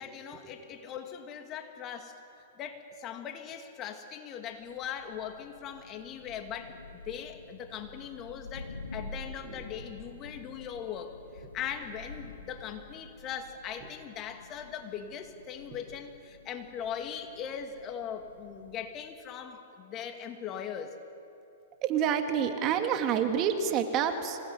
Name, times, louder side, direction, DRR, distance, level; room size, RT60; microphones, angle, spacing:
voice 1, 0.0-2.2 2.6-21.0, left 8 dB, 30° left, 5 dB, 2.4 m, -40 dB
Thunder, 4.5-19.1, left 3 dB, 90° left, 2.1 m, -48 dB
voice 2, 21.8-24.4, right 8 dB, 35° right, 6 dB, 2.3 m, -28 dB
26.5 x 18.5 x 9.7 m, 2.7 s
hypercardioid pair, 115°, 0 cm